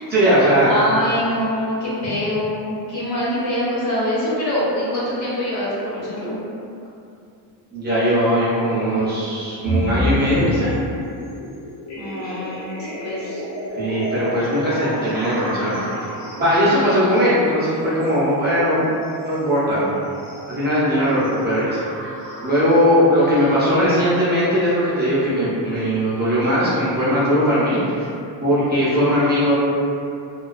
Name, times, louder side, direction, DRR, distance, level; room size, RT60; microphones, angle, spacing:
voice 1, 0.1-0.7 7.7-10.7 13.2-13.4 13.8-15.9 16.4-18.9 19.2-19.9 20.5-21.8 22.4-28.1 28.4-29.5, equal, 25° right, -11 dB, 0.5 m, -19 dB
voice 2, 0.6-6.4 12.0-13.4, left 1 dB, 65° left, -9 dB, 1.0 m, -24 dB
sound 1, 9.6-23.7, equal, 40° left, 0.5 m, -30 dB
2.3 x 2.2 x 2.4 m, 2.6 s
cardioid pair, 150°, 45 cm